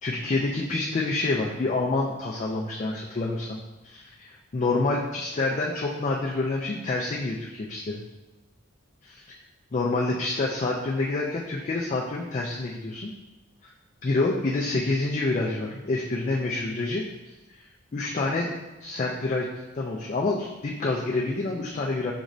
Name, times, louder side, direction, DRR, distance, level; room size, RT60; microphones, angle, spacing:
voice 1, 0.0-3.6 3.8-8.0 9.7-13.1 14.0-17.0 17.6-17.7 17.9-18.5 18.8-19.5 19.8-22.1, left 2 dB, 35° left, -2 dB, 0.3 m, -27 dB
6.0 x 3.1 x 2.6 m, 1.1 s
head